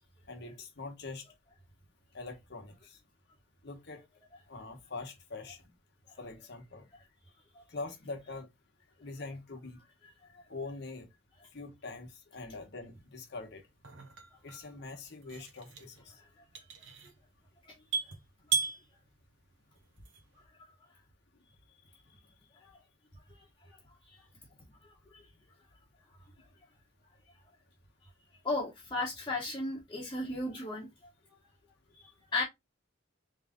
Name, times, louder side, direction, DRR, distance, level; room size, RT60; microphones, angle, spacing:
voice 1, 0.3-1.2 2.1-3.0 3.6-4.0 4.5-5.6 6.2-6.9 7.7-8.5 9.0-9.8 10.5-11.1 11.5-13.6 14.4-16.1, left 3 dB, 60° left, 1.1 m, -43 dB
sound 1, 12.9-20.4, right 5 dB, 65° right, 1.0 m, -39 dB
voice 2, 28.4-30.9 31.9-32.4, left 2 dB, 25° left, 1.0 m, -34 dB
3.6 x 3.2 x 3.6 m
head